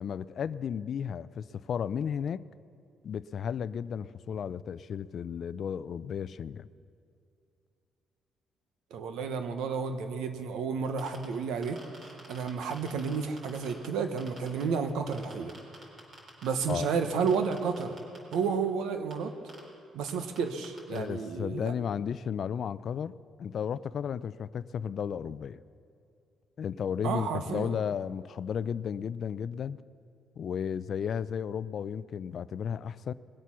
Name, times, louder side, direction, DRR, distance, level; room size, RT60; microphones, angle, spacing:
voice 1, 0.0-2.4 3.0-6.7 16.7-16.9 20.9-23.1 23.4-25.6 26.6-29.8 30.4-33.1, left 7 dB, 60° left, 17 dB, 0.4 m, -34 dB
voice 2, 8.9-11.8 12.3-15.5 16.4-18.0 18.3-19.3 19.9-21.7 27.0-27.7, right 5 dB, 90° right, 8 dB, 1.0 m, -31 dB
sound 1, 10.9-11.2 11.6-13.9 14.2-14.6 15.1-16.8 17.1-18.3 19.1-19.2 19.5-19.6 20.1-20.2 20.4-20.5 20.6-21.0, right 2 dB, 50° right, 4.2 m, -48 dB
20.5 x 8.3 x 6.2 m, 2.4 s
cardioid pair, 90°, 0 cm